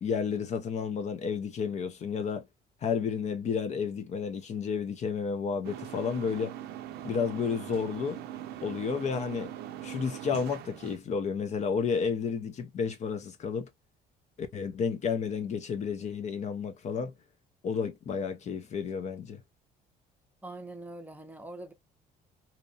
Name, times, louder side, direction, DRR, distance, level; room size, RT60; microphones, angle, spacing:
voice 1, 0.0-2.5 2.8-6.5 7.0-8.2 8.6-9.5 9.8-13.7 14.4-17.1 17.6-19.4, left 6 dB, 45° left, 0.5 m, -31 dB
sound 1, 5.6-11.0, right 11 dB, 70° right, 0.4 m, -41 dB
voice 2, 20.4-21.7, right 2 dB, 10° right, 0.6 m, -43 dB
2.7 x 2.0 x 2.6 m
cardioid pair, 110°, 17 cm